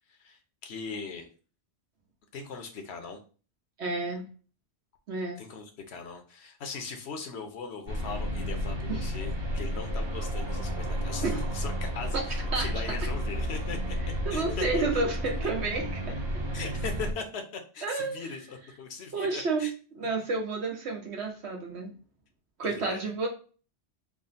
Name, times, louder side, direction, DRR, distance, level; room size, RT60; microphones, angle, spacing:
voice 1, 0.1-1.3 2.3-3.2 5.4-14.0 14.3-15.0 16.5-19.7 22.6-23.0, left 5 dB, 75° left, 5 dB, 1.0 m, -40 dB
voice 2, 3.8-4.2 5.1-5.4 8.9-9.1 11.2-11.4 12.1-12.2 12.5-12.7 14.2-16.2 17.8-18.2 19.1-19.7 20.0-21.9 22.6-23.3, right 3 dB, 80° right, 1 dB, 1.3 m, -30 dB
sound 1, 7.9-17.1, equal, 30° right, 0.7 m, -32 dB
3.6 x 2.1 x 4.0 m, 0.37 s
omnidirectional pair, 1.1 m